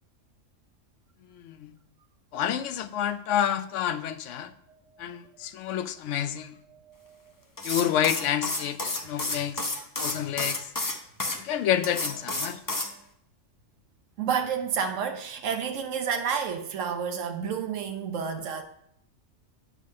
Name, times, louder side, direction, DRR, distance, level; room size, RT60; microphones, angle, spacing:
voice 1, 1.3-1.7 2.3-4.5 5.0-6.6 7.6-9.6 10.0-10.7 11.4-12.6, left 10 dB, 75° left, 0.9 m, -29 dB
sound 1, 7.6-11.4 11.8-12.9, left 2 dB, 20° left, 0.6 m, -31 dB
voice 2, 14.2-18.6, right 7 dB, 80° right, 1.2 m, -30 dB
8.9 x 3.8 x 6.4 m
omnidirectional pair, 1.3 m